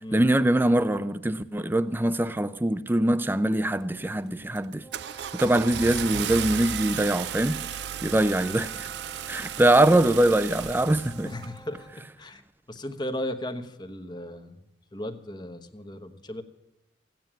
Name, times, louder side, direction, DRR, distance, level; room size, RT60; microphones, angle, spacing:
voice 1, 0.1-4.8 5.3-7.6 8.0-8.9 9.3-11.3, right 1 dB, 10° right, 0.5 m, -23 dB
Car / Engine starting, 3.8-4.1 4.6-11.5, right 9 dB, 65° right, 0.4 m, -34 dB
Wind instrument woodwind instrument, 4.8-12.1, right 3 dB, 5° left, 1.3 m, -50 dB
voice 2, 11.2-12.4 12.7-14.6 14.9-16.4, left 1 dB, 25° left, 1.1 m, -36 dB
15.5 x 9.2 x 8.9 m
head